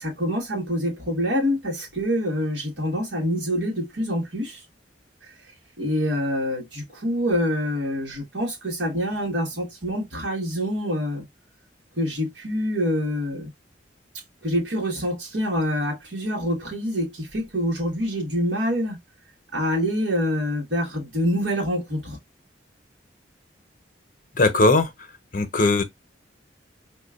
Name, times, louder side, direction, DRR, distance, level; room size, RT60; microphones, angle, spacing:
voice 1, 0.0-4.6 5.8-11.2 12.0-13.5 14.4-19.0 19.5-22.2, equal, 75° right, 1.6 m, -26 dB
voice 2, 24.4-24.9 25.3-25.8, left 2 dB, 50° left, 0.8 m, -19 dB
5.0 x 2.4 x 2.4 m
head